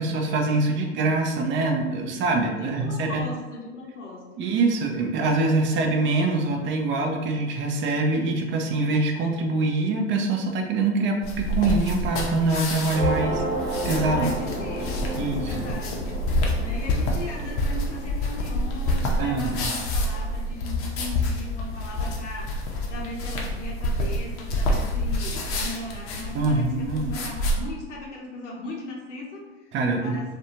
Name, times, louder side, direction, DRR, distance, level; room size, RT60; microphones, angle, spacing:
voice 1, 0.0-3.1 4.4-13.4 13.8-14.2 15.2-15.7 19.2-19.7 26.3-27.1 29.7-30.2, right 3 dB, 35° right, 2 dB, 0.5 m, -24 dB
voice 2, 2.4-4.3 13.9-16.0 16.6-22.6 22.9-29.7 30.0-30.3, left 1 dB, 90° left, -1 dB, 0.7 m, -38 dB
sound 1, 11.2-27.5, left 1 dB, 40° left, 0.6 m, -28 dB
sound 2, 12.9-19.7, right 2 dB, 50° right, 0.9 m, -32 dB
2.5 x 2.2 x 2.8 m, 1.2 s
hypercardioid pair, 90°, 35 cm